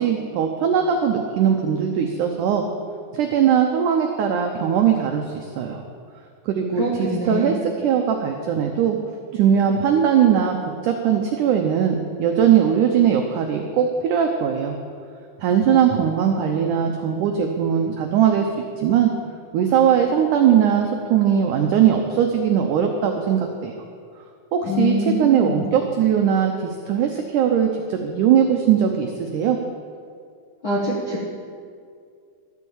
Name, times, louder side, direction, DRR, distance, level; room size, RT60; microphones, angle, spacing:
voice 1, 0.0-2.6 3.1-5.8 6.5-7.6 7.8-9.0 9.3-10.6 10.8-14.8 15.4-18.5 18.8-19.1 19.5-23.7 24.5-29.6, right 8 dB, 90° right, 3 dB, 1.7 m, -20 dB
voice 2, 6.7-7.6 24.6-25.7 30.6-31.2, left 1 dB, 65° left, -4 dB, 1.2 m, -24 dB
13.0 x 8.3 x 7.1 m, 2.2 s
omnidirectional pair, 4.6 m